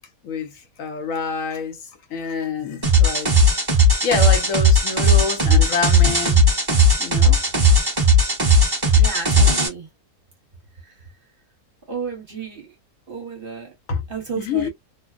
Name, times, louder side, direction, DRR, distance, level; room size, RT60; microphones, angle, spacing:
voice 1, 0.2-3.5 4.0-6.6 7.0-7.4 13.9-14.0 14.4-14.7, left 5 dB, 65° left, 1.1 m, -27 dB
sound 1, 2.8-9.7, equal, 15° right, 1.0 m, -16 dB
voice 2, 9.0-9.9 11.9-12.7 13.1-13.7 14.1-14.7, right 5 dB, 40° right, 1.3 m, -32 dB
2.8 x 2.1 x 2.4 m
omnidirectional pair, 1.6 m